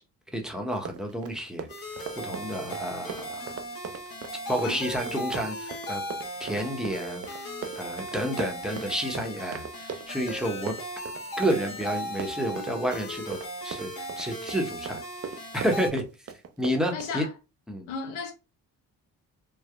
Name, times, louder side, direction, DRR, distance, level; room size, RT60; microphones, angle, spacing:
voice 1, 0.3-3.6 4.5-6.0 6.4-7.2 7.8-10.7 11.4-13.4 13.6-15.0 15.5-16.0 16.6-17.2 17.7-17.9, equal, ahead, 0.9 m, -30 dB
Run, 0.7-17.2, right 6 dB, 35° right, 0.5 m, -40 dB
sound 1, 1.7-15.9, equal, 55° left, 1.3 m, -37 dB
voice 2, 4.6-4.9 16.9-17.3 17.9-18.3, left 5 dB, 90° left, 0.8 m, -35 dB
3.4 x 2.1 x 2.3 m
supercardioid pair, 50°, 42 cm